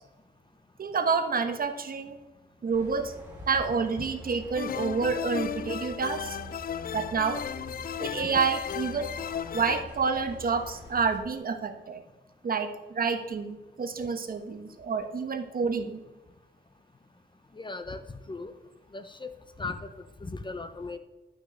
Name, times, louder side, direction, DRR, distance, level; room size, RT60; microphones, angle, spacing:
voice 1, 0.8-2.2 2.6-3.1 3.5-6.4 6.9-7.4 8.0-9.1 9.5-12.0 12.4-16.0, right 5 dB, 50° right, 7 dB, 1.3 m, -28 dB
sound 1, 2.7-11.2, right 1 dB, 10° right, 4.4 m, -46 dB
sound 2, 4.5-9.8, left 9 dB, 50° left, 0.4 m, -35 dB
voice 2, 17.6-18.0 18.3-18.5 18.9-19.3 19.6-19.9 20.2-21.0, left 3 dB, 25° left, 10 dB, 0.8 m, -37 dB
11.5 x 6.4 x 6.6 m, 1.1 s
wide cardioid pair, 110°, 19 cm